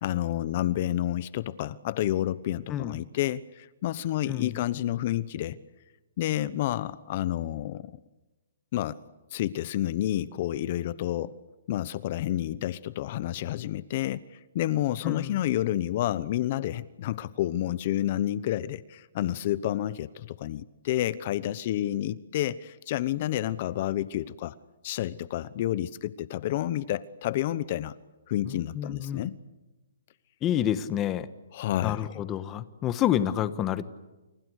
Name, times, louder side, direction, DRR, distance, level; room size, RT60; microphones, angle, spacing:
voice 1, 0.0-5.6 6.2-8.0 8.7-9.0 9.3-11.4 11.7-24.5 24.8-27.9 28.3-29.4 31.5-32.2, left 13 dB, 40° left, 17 dB, 0.9 m, -30 dB
voice 2, 2.7-3.0 4.3-4.6 15.0-15.4 28.5-29.3 30.4-31.3 31.8-33.8, left 11 dB, 20° left, 13 dB, 1.4 m, -29 dB
29.5 x 28.5 x 6.5 m, 1.1 s
hypercardioid pair, 160°, 0 cm